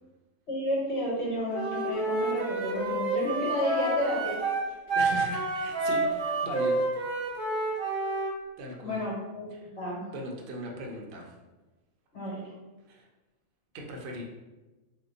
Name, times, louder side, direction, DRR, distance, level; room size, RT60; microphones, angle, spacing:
voice 1, 0.5-4.4 8.8-9.5 9.8-10.0 12.1-12.4, equal, 60° left, -5 dB, 1.3 m, -31 dB
Wind instrument woodwind instrument, 1.5-8.3, right 2 dB, 25° right, 0.8 m, -29 dB
voice 2, 5.0-7.2 8.6-9.0 9.5-9.7 10.1-11.3 12.9-13.1 13.7-14.2, equal, 60° right, 0 dB, 0.7 m, -39 dB
2.7 x 2.2 x 3.6 m, 1.1 s
omnidirectional pair, 1.3 m